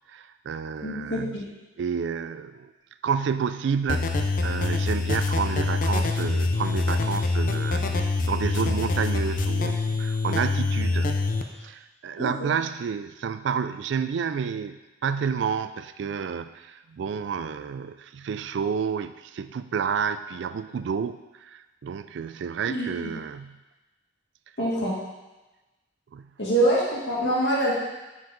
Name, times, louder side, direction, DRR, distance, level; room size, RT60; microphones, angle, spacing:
voice 1, 0.1-1.4 1.8-2.7 3.0-4.1 4.4-11.3 11.6-23.5 26.1-26.3, right 6 dB, 70° right, 12 dB, 0.3 m, -30 dB
voice 2, 0.8-1.5 12.2-12.5 22.7-23.1 24.6-25.0 26.4-27.8, right 1 dB, 65° left, -6 dB, 2.0 m, -25 dB
sound 1, 3.9-11.4, left 3 dB, 45° left, 0.5 m, -25 dB
7.5 x 4.6 x 3.8 m, 1.1 s
head